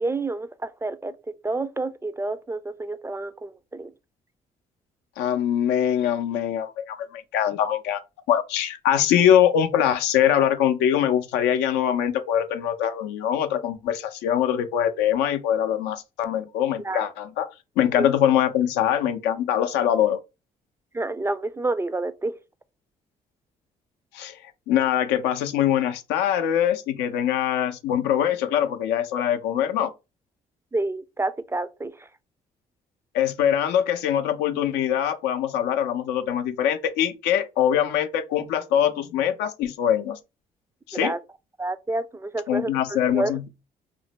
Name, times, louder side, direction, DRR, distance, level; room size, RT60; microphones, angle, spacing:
voice 1, 0.0-3.9 16.8-17.0 18.0-18.1 20.9-22.3 30.7-31.9 40.9-41.2 41.6-43.3, right 2 dB, 15° right, 0.3 m, -29 dB
voice 2, 5.2-8.0 8.3-17.5 17.8-20.2 24.1-29.9 33.1-40.2 40.9-41.1 42.5-43.5, left 10 dB, 85° left, 0.5 m, -23 dB
2.5 x 2.1 x 3.9 m
supercardioid pair, 60°, 17 cm